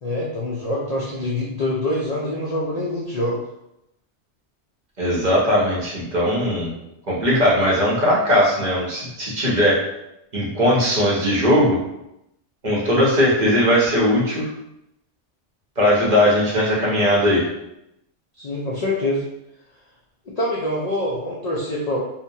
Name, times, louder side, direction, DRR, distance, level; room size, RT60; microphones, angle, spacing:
voice 1, 0.0-3.4 18.4-19.2 20.3-22.0, left 1 dB, 75° left, -5 dB, 0.3 m, -25 dB
voice 2, 5.0-6.7 7.1-9.8 10.3-11.8 12.6-14.5 15.8-17.4, equal, 45° right, -5 dB, 0.7 m, -19 dB
2.8 x 2.1 x 2.6 m, 0.85 s
omnidirectional pair, 1.2 m